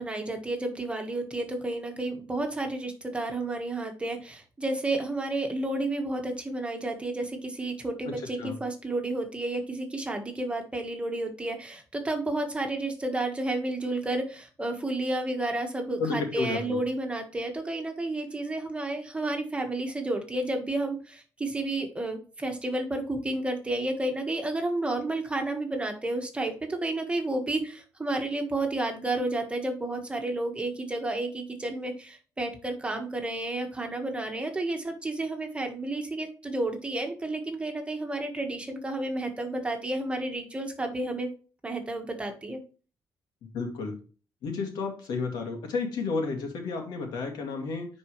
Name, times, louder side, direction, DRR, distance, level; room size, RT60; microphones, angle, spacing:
voice 1, 0.0-41.3 41.6-42.6, right 2 dB, 15° right, 4 dB, 1.5 m, -31 dB
voice 2, 16.0-16.8 43.5-44.0 44.4-47.9, left 4 dB, 85° left, 3 dB, 2.3 m, -31 dB
9.8 x 4.4 x 3.1 m, 0.36 s
cardioid pair, 125°, 7 cm